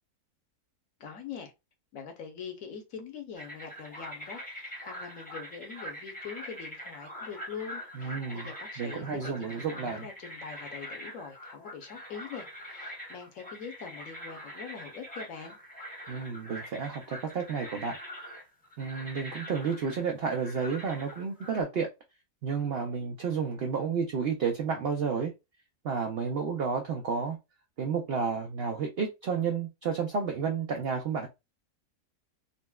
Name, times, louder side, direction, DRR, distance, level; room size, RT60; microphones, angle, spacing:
voice 1, 1.0-1.5 1.9-15.6, left 6 dB, 65° left, 1.1 m, -43 dB
sound 1, 3.3-21.6, equal, 5° left, 0.7 m, -44 dB
voice 2, 8.0-8.5 8.8-10.0 16.1-18.0 18.8-21.9 22.4-25.3 25.8-27.4 27.8-31.3, right 5 dB, 80° right, 0.5 m, -31 dB
4.0 x 2.1 x 2.2 m
omnidirectional pair, 1.6 m